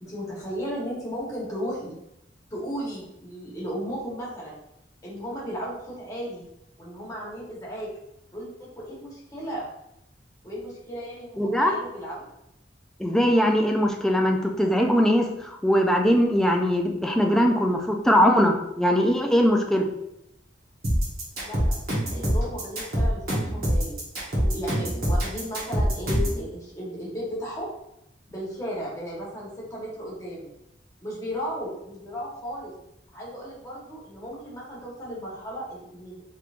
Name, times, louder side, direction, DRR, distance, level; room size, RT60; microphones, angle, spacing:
voice 1, 0.0-1.9 2.5-4.6 5.0-6.4 6.8-7.9 8.3-9.7 10.4-12.3 21.4-24.0 24.3-27.7 28.3-30.5 31.0-32.7 33.1-36.2, equal, 20° left, -6 dB, 1.2 m, -35 dB
voice 2, 11.4-11.7 13.0-19.9, equal, 5° left, 2 dB, 0.4 m, -21 dB
sound 1, 20.8-26.4, equal, 55° right, 1.2 m, -24 dB
3.4 x 3.1 x 2.5 m, 0.82 s
head